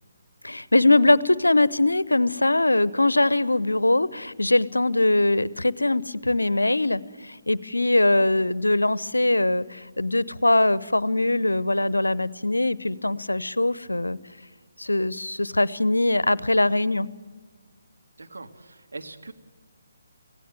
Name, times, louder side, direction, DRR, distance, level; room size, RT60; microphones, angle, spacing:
voice 1, 0.4-14.2 14.8-17.1, left 2 dB, 80° left, 20 dB, 0.8 m, -22 dB
voice 2, 18.2-19.3, right 3 dB, 70° right, 5 dB, 1.8 m, -41 dB
26.0 x 17.0 x 7.8 m, 1.4 s
figure-of-eight pair, 140°, 0 cm